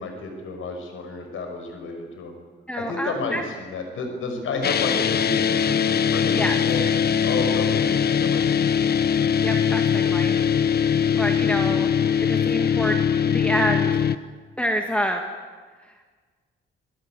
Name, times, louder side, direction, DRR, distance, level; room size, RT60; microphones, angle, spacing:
voice 1, 0.0-2.3 2.8-6.8 7.2-8.8, left 3 dB, 75° left, 4 dB, 5.9 m, -31 dB
voice 2, 2.7-3.4 6.3-6.6 9.4-10.4 11.2-11.9 12.2-13.0 13.3-14.0 14.6-15.2 15.9-16.1, equal, 5° left, 3 dB, 1.9 m, -27 dB
sound 1, 4.6-14.2, left 7 dB, 50° left, 0.9 m, -21 dB
28.0 x 18.0 x 9.1 m, 1.5 s
cardioid pair, 140°, 21 cm